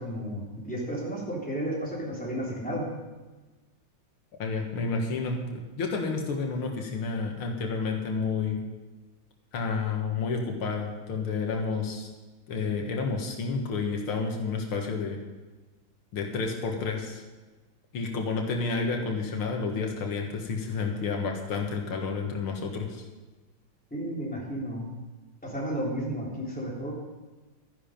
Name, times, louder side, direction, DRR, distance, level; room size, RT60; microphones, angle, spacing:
voice 1, 0.0-2.9 23.9-24.9 25.4-26.9, equal, 5° left, -5 dB, 3.4 m, -32 dB
voice 2, 4.4-8.6 9.5-12.1 12.5-15.2 16.1-17.2 17.9-23.0, left 4 dB, 90° left, 2 dB, 2.4 m, -30 dB
13.5 x 10.5 x 5.2 m, 1.2 s
omnidirectional pair, 2.3 m